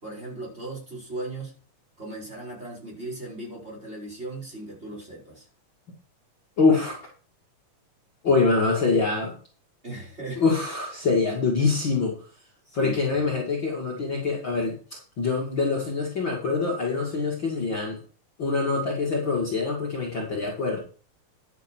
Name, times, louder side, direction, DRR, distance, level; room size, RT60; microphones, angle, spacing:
voice 1, 0.0-1.6 2.0-5.5 9.8-10.4 12.7-13.3, right 2 dB, 20° right, -2 dB, 5.1 m, -37 dB
voice 2, 6.6-7.0 8.2-9.4 10.4-12.2 12.7-18.0 18.4-20.8, left 4 dB, 40° left, -3 dB, 2.7 m, -24 dB
11.5 x 7.7 x 4.5 m, 0.38 s
omnidirectional pair, 3.8 m